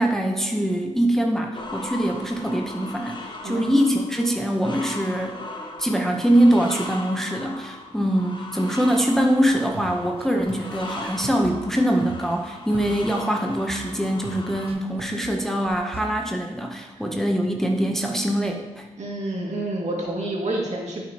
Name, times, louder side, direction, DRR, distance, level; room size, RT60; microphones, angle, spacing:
voice 1, 0.0-5.4 5.8-18.9, right 1 dB, 5° left, 1 dB, 0.7 m, -23 dB
sound 1, 1.5-14.7, left 2 dB, 40° left, 1.0 m, -38 dB
voice 2, 3.4-3.8 19.0-21.0, right 1 dB, 70° right, -2 dB, 2.0 m, -28 dB
sound 2, 9.4-16.0, right 3 dB, 50° right, 0.7 m, -41 dB
11.5 x 6.1 x 2.8 m, 1.3 s
wide cardioid pair, 135°, 12 cm